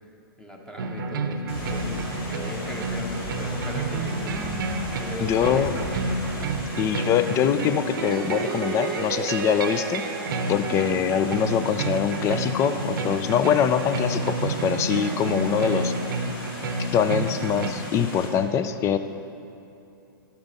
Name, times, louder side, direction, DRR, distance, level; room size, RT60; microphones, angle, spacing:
voice 1, 0.4-4.5 5.0-6.0, left 1 dB, 5° left, 0 dB, 1.1 m, -38 dB
sound 1, 0.8-17.7, right 3 dB, 60° right, 0.8 m, -30 dB
Water, 1.5-18.3, left 1 dB, 75° left, 2.7 m, -39 dB
sound 2, 1.5-6.5, left 2 dB, 40° left, 1.4 m, -38 dB
voice 2, 5.2-5.7 6.8-10.1 10.5-15.9 16.8-19.0, left 8 dB, 25° left, 11 dB, 0.4 m, -23 dB
11.5 x 8.7 x 4.1 m, 2.7 s
hypercardioid pair, 120°, 12 cm